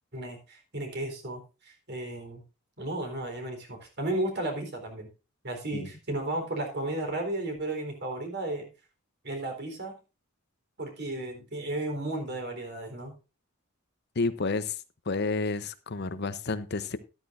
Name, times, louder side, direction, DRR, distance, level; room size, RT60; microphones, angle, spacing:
voice 1, 0.1-2.4 2.8-5.1 5.4-8.7 9.2-9.9 10.8-13.1, right 1 dB, 55° right, 3.8 m, -34 dB
voice 2, 14.2-14.8 15.1-17.0, left 3 dB, 55° left, 0.8 m, -30 dB
13.0 x 12.0 x 2.5 m
head